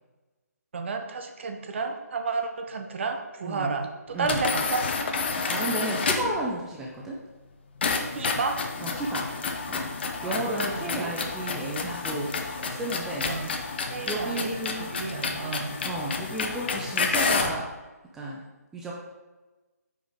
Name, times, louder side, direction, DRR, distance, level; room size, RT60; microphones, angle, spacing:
voice 1, 0.7-4.9 8.1-8.6 10.2-11.2 13.3-13.5 13.9-15.7, right 4 dB, 45° right, 5 dB, 0.7 m, -32 dB
voice 2, 3.4-3.7 4.1-4.4 5.4-7.2 8.8-9.3 9.7-9.9 10.2-13.3 14.0-14.9 15.8-17.7 18.1-18.4 18.7-19.0, right 2 dB, 5° right, -3 dB, 0.4 m, -33 dB
sound 1, 4.2-6.4 7.8-17.6, left 4 dB, 40° left, 0.6 m, -30 dB
5.1 x 5.0 x 3.7 m, 1.2 s
figure-of-eight pair, 150°, 9 cm